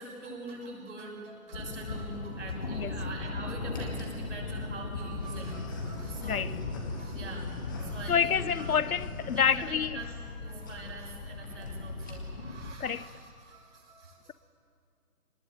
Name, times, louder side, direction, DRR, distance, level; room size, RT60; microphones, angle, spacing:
voice 1, 0.0-8.9 9.3-14.3, right 2 dB, 50° right, 6.5 m, -44 dB
Thunder, 1.5-12.7, left 3 dB, 30° left, 1.3 m, -38 dB
sound 1, 1.6-2.0 2.7-3.3 3.7-4.2 4.9-10.3 10.6-10.8 11.1-11.2 11.4-11.7 12.0-12.5, left 3 dB, 15° left, 1.3 m, -45 dB
voice 2, 8.1-10.0 12.8-13.1, left 7 dB, 65° left, 0.7 m, -28 dB
24.0 x 19.5 x 8.0 m
hypercardioid pair, 165°, 46 cm